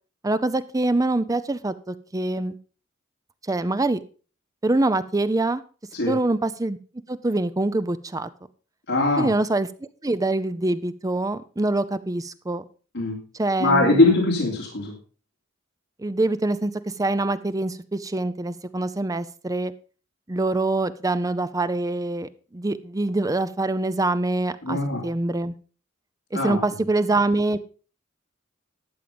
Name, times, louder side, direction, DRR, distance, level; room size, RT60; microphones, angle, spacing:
voice 1, 0.2-2.6 3.5-4.0 4.6-5.6 6.1-6.8 7.1-8.3 9.2-9.7 10.0-12.6 13.3-14.2 16.0-16.7 17.0-19.7 20.3-25.5 26.3-27.6, right 2 dB, 15° right, 14 dB, 0.5 m, -24 dB
voice 2, 8.9-9.3 12.9-13.2 13.6-14.9 24.6-25.0 26.3-26.6, left 2 dB, 60° left, -2 dB, 3.0 m, -21 dB
12.5 x 7.4 x 5.1 m, 0.38 s
head